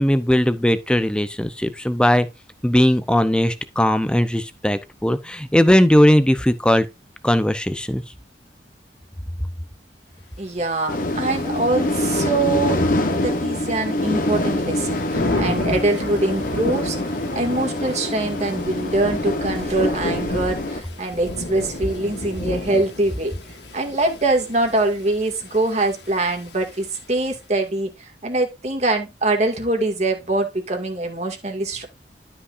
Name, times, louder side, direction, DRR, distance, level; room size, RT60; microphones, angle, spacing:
voice 1, 0.0-2.3 2.6-6.9 7.2-8.0, equal, 5° left, 0.7 m, -18 dB
voice 2, 10.4-12.8 13.1-23.3 23.7-31.9, right 2 dB, 40° right, 2.2 m, -23 dB
Thunder / Rain, 10.8-27.4, left 1 dB, 75° left, 2.2 m, -33 dB
sound 1, 10.9-20.8, left 1 dB, 50° left, 1.2 m, -25 dB
12.5 x 5.6 x 2.6 m
head